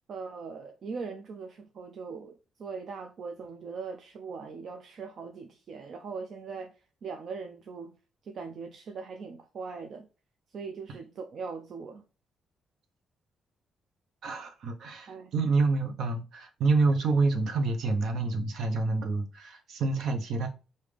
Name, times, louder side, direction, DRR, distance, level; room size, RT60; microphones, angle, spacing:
voice 1, 0.1-7.9 8.2-10.1 10.5-12.0 15.1-15.3, right 5 dB, 45° right, 0.4 m, -40 dB
voice 2, 14.2-20.5, right 3 dB, 65° right, 0.8 m, -27 dB
4.9 x 2.7 x 3.4 m
wide cardioid pair, 180°, 0 cm